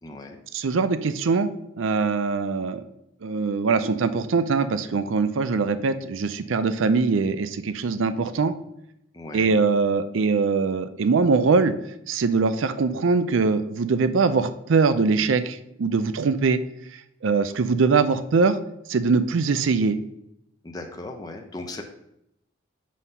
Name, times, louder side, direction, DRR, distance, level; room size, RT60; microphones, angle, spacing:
voice 1, 0.0-0.4 9.1-9.7 20.6-21.8, left 2 dB, 20° left, 3 dB, 0.6 m, -37 dB
voice 2, 0.5-1.5 1.8-2.8 3.2-8.5 9.3-11.7 12.1-16.6 16.9-18.6 18.9-20.0, right 4 dB, 80° right, 11 dB, 0.5 m, -22 dB
6.3 x 3.8 x 5.5 m, 0.78 s
head